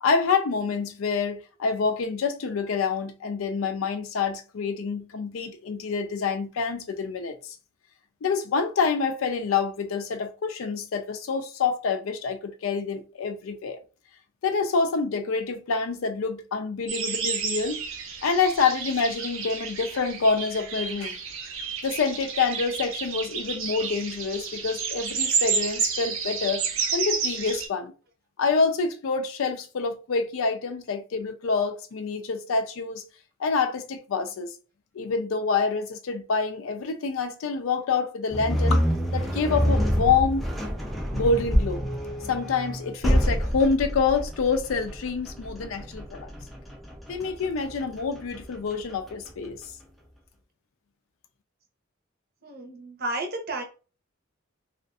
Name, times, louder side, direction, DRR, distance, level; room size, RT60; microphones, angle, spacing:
voice 1, 0.0-7.4 8.2-13.8 14.4-17.8 18.2-21.2 21.8-26.7 26.9-27.9 28.4-33.0 33.4-34.5 35.0-38.8 39.1-40.5 41.1-41.9 42.3-46.3 47.1-49.6, left 5 dB, 90° left, 0.4 m, -27 dB
sound 1, 16.9-27.7, right 5 dB, 90° right, 0.6 m, -30 dB
sound 2, 38.3-49.4, equal, ahead, 0.4 m, -27 dB
voice 2, 52.4-53.6, right 2 dB, 50° right, 0.7 m, -32 dB
2.6 x 2.4 x 2.3 m
head